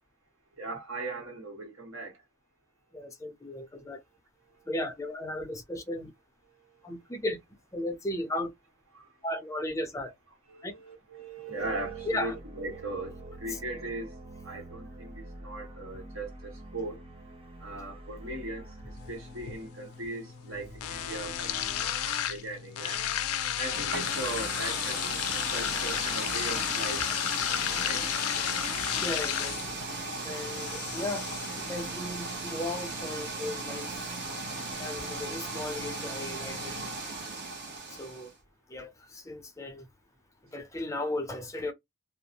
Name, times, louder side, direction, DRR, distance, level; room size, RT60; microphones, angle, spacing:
voice 1, 0.6-2.2 8.9-9.1 10.5-17.0 17.6-18.7 19.1-23.0 23.5-27.0 27.8-28.0, right 2 dB, 70° right, 1.4 m, -39 dB
voice 2, 2.9-4.0 4.7-6.1 6.8-7.4 7.7-8.5 9.2-10.1 10.6-10.7 12.1-12.3 13.5-13.6 28.8-29.7 30.2-33.9 34.8-36.7 37.9-38.3 38.7-39.9 40.5-41.7, left 1 dB, 15° left, 0.5 m, -36 dB
sound 1, 11.6-21.8, right 1 dB, 25° right, 0.7 m, -47 dB
sound 2, 19.0-37.0, left 10 dB, 80° left, 0.4 m, -34 dB
sound 3, 23.7-38.3, right 3 dB, 50° right, 0.9 m, -37 dB
2.5 x 2.0 x 2.9 m
head